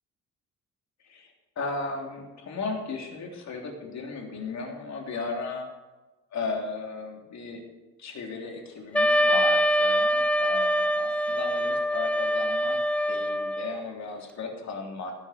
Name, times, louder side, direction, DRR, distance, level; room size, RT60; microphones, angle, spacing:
voice 1, 1.0-5.7 6.3-7.6 8.0-12.8 13.1-15.1, left 4 dB, 65° left, 1 dB, 3.5 m, -35 dB
Wind instrument woodwind instrument, 8.9-13.8, equal, 5° left, 0.4 m, -24 dB
16.5 x 14.5 x 4.6 m, 1.1 s
cardioid pair, 90°, 30 cm